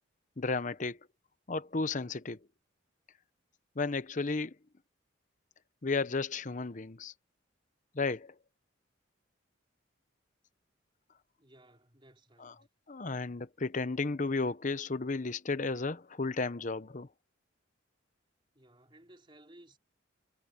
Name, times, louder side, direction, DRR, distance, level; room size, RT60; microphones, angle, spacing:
voice 1, 0.4-1.0 1.5-2.4 3.8-4.5 5.8-7.1 7.9-8.3 12.4-12.5 12.9-17.1, left 3 dB, 40° left, 0.8 m, -33 dB
voice 2, 11.4-12.7 18.5-19.8, right 1 dB, 25° right, 4.3 m, -59 dB
head